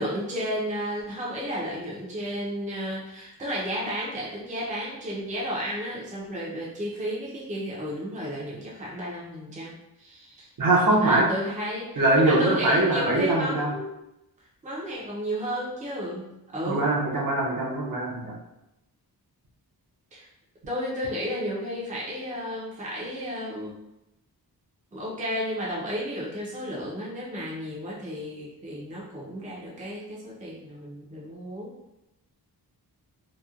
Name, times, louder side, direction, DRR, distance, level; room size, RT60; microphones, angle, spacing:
voice 1, 0.0-10.5 10.9-13.9 14.6-16.9 20.1-20.3 20.7-23.7 24.9-31.7, equal, 20° right, -5 dB, 0.5 m, -33 dB
voice 2, 10.6-11.3 12.0-13.7 16.6-18.4, right 2 dB, 55° right, -4 dB, 0.7 m, -22 dB
2.9 x 2.1 x 2.3 m, 0.89 s
wide cardioid pair, 160°, 39 cm